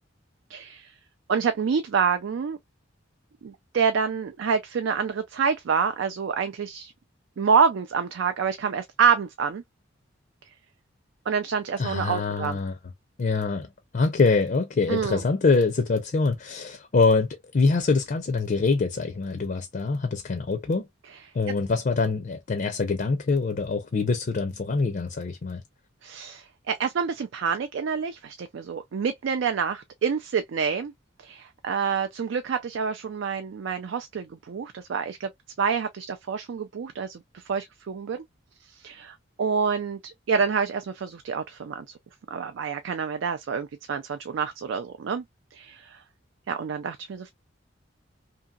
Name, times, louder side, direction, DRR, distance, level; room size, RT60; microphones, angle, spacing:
voice 1, 0.5-0.9 1.3-2.6 3.4-6.9 7.4-9.6 11.3-12.6 14.9-15.2 26.0-30.9 31.2-35.3 35.6-38.2 38.6-41.9 42.3-45.2 45.5-46.0 46.5-47.3, right 6 dB, 70° right, 0.4 m, -27 dB
voice 2, 11.8-12.8 13.2-20.9 21.3-25.6, left 4 dB, 45° left, 0.5 m, -24 dB
2.8 x 2.7 x 2.3 m
head